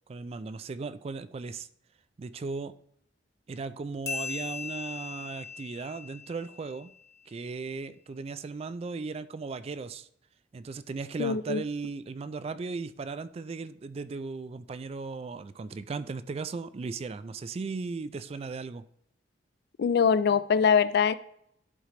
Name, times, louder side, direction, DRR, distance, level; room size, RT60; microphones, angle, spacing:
voice 1, 0.1-1.7 2.2-2.7 3.5-6.9 7.3-10.1 10.5-18.9, right 4 dB, 35° right, 0.3 m, -37 dB
sound 1, 4.1-7.1, left 5 dB, 15° left, 1.0 m, -39 dB
voice 2, 11.2-11.6 19.8-21.1, left 6 dB, 60° left, 0.3 m, -23 dB
11.0 x 3.8 x 3.3 m
head